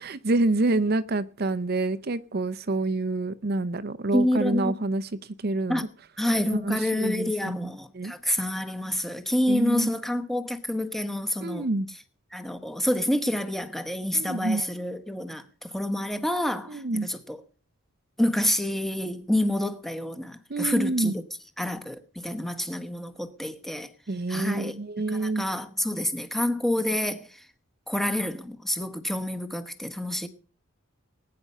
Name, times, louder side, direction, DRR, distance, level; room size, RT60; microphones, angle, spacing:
voice 1, 0.0-5.1 5.4-5.9 6.5-8.1 9.5-9.9 11.4-11.9 14.1-14.6 16.7-17.1 20.5-21.1 24.1-25.4, right 2 dB, 45° right, 0.6 m, -27 dB
voice 2, 4.1-4.7 5.7-5.8 6.2-11.7 12.3-15.4 15.7-17.4 18.2-21.2 21.6-23.9 24.3-24.8 25.1-27.2 27.9-30.3, left 1 dB, ahead, 1.1 m, -28 dB
20.0 x 9.5 x 5.5 m
head